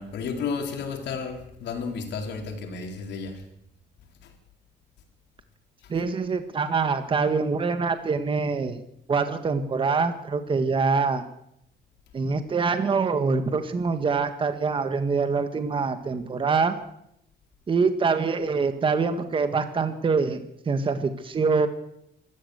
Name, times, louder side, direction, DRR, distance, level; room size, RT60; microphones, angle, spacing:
voice 1, 0.0-3.4 4.2-4.3 5.8-5.9, left 5 dB, 70° left, 4.3 m, -32 dB
voice 2, 5.9-8.8 9.1-11.2 12.1-16.8 17.7-20.4 20.6-21.7, right 4 dB, 30° right, 1.7 m, -24 dB
25.5 x 14.0 x 8.1 m
cardioid pair, 150°, 18 cm